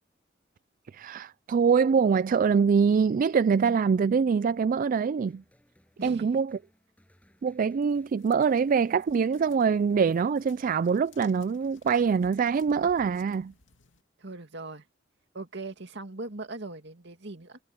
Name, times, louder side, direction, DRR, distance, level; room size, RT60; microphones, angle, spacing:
voice 1, 0.9-5.4 6.0-6.6 7.4-13.5, right 6 dB, 45° right, 0.3 m, -24 dB
sound 1, 5.3-13.6, equal, 10° left, 7.4 m, -64 dB
voice 2, 6.0-6.4 14.2-14.9 15.3-17.6, right 2 dB, 65° right, 2.4 m, -40 dB
sound 2, 7.8-14.0, left 4 dB, 75° left, 2.7 m, -59 dB
head